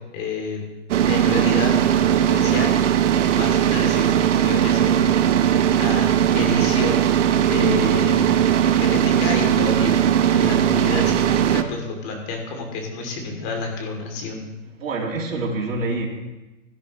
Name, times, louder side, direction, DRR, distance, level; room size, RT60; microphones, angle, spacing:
voice 1, 0.1-0.6 1.1-1.8 2.0-2.8 3.4-5.1 5.7-6.1 6.3-7.1 7.5-8.3 8.7-10.1 10.3-14.4, left 3 dB, 40° left, 1 dB, 3.0 m, -29 dB
sound 1, 0.9-11.6, right 10 dB, 65° right, 0.9 m, -19 dB
voice 2, 7.5-7.9 14.7-16.1, right 2 dB, 80° right, -1 dB, 2.9 m, -26 dB
17.0 x 10.5 x 3.2 m, 1.0 s
hypercardioid pair, 140°, 39 cm